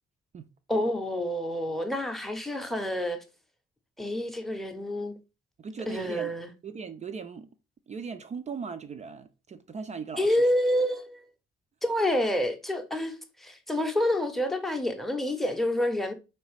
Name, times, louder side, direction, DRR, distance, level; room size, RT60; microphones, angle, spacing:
voice 1, 0.7-3.2 4.0-5.2 5.9-6.5 10.2-11.2 11.8-16.1, left 1 dB, ahead, 0.7 m, -28 dB
voice 2, 5.6-6.3 6.6-7.5 7.9-10.5, right 5 dB, 25° right, 0.4 m, -38 dB
4.5 x 3.1 x 3.1 m
figure-of-eight pair, 40°, 29 cm